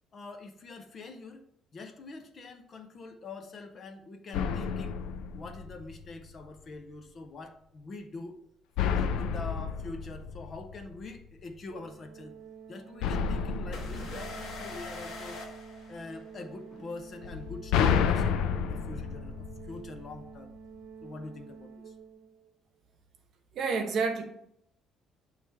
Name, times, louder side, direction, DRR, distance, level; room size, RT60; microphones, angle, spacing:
voice 1, 0.1-1.5 1.7-5.0 5.3-8.4 8.9-12.3 12.7-15.4 15.9-20.5 21.0-21.9, left 3 dB, 30° left, 0.6 m, -44 dB
sound 1, 4.3-6.2 8.8-11.2 13.0-15.3 17.2-20.3, left 7 dB, 85° left, 0.4 m, -31 dB
Organ, 11.7-22.6, right 6 dB, 80° right, 0.8 m, -49 dB
sound 2, 13.7-16.5, left 3 dB, 55° left, 1.3 m, -43 dB
voice 2, 23.5-24.2, right 5 dB, 50° right, 0.9 m, -28 dB
8.8 x 3.2 x 3.4 m
cardioid pair, 165°, 0 cm